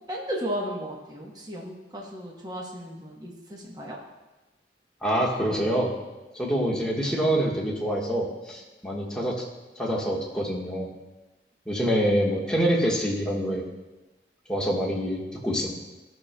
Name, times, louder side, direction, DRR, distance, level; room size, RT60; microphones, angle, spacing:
voice 1, 0.1-4.0, equal, 25° right, -2 dB, 0.9 m, -35 dB
voice 2, 5.0-5.9 6.4-9.4 9.8-10.9 11.7-13.6 14.5-15.7, equal, 5° left, -4 dB, 1.3 m, -26 dB
14.0 x 6.2 x 2.2 m, 1.1 s
head